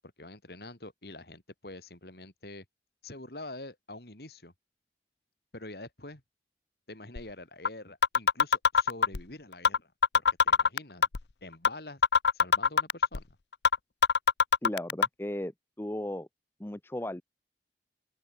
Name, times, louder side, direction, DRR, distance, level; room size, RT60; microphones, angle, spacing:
voice 1, 0.0-2.6 3.0-4.5 5.5-6.2 6.9-11.1 11.4-12.0 12.3-13.4, left 2 dB, 60° left, 3.0 m, -46 dB
sound 1, 7.2-7.3 7.7-7.8 8.0-9.2 9.7-9.8 10.0-11.2 11.7-11.8 12.0-13.2 13.7-13.8 14.0-15.1, left 6 dB, 80° left, 0.7 m, -22 dB
voice 2, 14.6-15.5 15.8-16.3 16.6-17.2, left 1 dB, 15° left, 0.6 m, -35 dB
open air
head